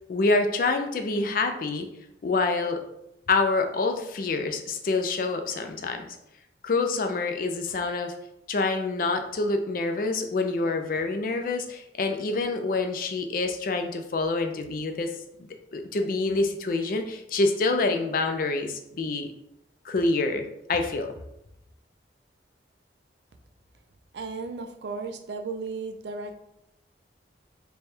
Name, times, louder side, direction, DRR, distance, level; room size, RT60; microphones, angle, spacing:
voice 1, 0.1-1.9 2.2-2.8 3.3-6.1 6.6-8.1 8.5-15.1 15.7-19.3 19.8-21.1, left 3 dB, 50° left, 6 dB, 0.4 m, -26 dB
voice 2, 24.1-26.3, right 4 dB, 75° right, 6 dB, 0.4 m, -35 dB
3.3 x 2.3 x 4.2 m, 0.81 s
head